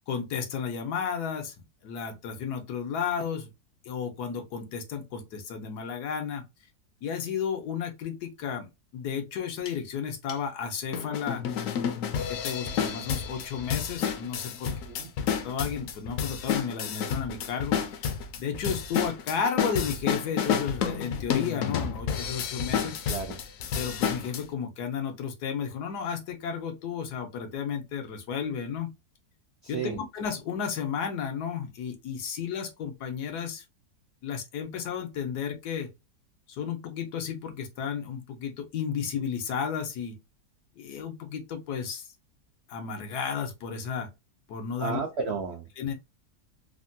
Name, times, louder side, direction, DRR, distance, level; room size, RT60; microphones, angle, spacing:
voice 1, 0.1-1.5 1.8-3.5 3.8-6.4 7.0-11.4 12.1-14.7 15.3-18.0 18.4-23.0 23.7-28.9 29.7-33.6 34.2-35.9 36.5-40.1 40.8-42.1 42.7-44.1 44.5-45.0 45.8-45.9, left 7 dB, 90° left, 1.3 m, -33 dB
sound 1, 9.7-9.8 10.3-10.4 10.9-24.4, left 7 dB, 70° left, 0.8 m, -30 dB
voice 2, 14.7-15.1 22.8-23.4 29.6-30.0 44.8-45.6, right 5 dB, 80° right, 0.5 m, -33 dB
3.4 x 2.1 x 2.6 m
omnidirectional pair, 1.7 m